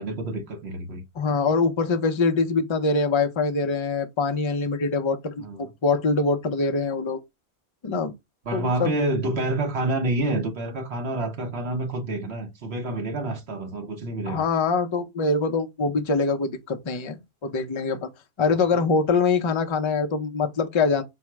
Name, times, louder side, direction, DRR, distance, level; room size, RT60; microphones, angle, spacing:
voice 1, 0.0-1.0 5.4-5.7 8.5-14.4 18.5-18.9, right 2 dB, 70° right, 1.1 m, -28 dB
voice 2, 1.2-7.2 7.8-8.1 8.5-8.9 14.3-18.1 18.4-21.0, left 4 dB, 40° left, 0.5 m, -24 dB
4.5 x 2.0 x 4.5 m
omnidirectional pair, 1.1 m